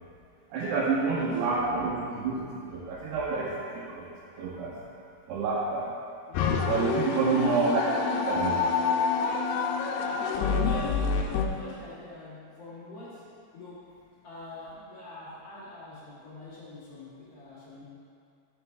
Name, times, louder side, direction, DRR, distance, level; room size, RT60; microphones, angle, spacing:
voice 1, 0.5-4.1 4.4-4.8 5.3-5.9 6.6-7.9 8.3-8.6, right 4 dB, 90° right, -7 dB, 3.0 m, -28 dB
sound 1, 6.3-11.5, left 5 dB, 85° left, 2.7 m, -27 dB
voice 2, 7.2-8.2 9.9-13.9 14.2-17.8, left 2 dB, 45° left, -9 dB, 2.5 m, -44 dB
13.5 x 6.7 x 3.4 m, 2.4 s
omnidirectional pair, 4.6 m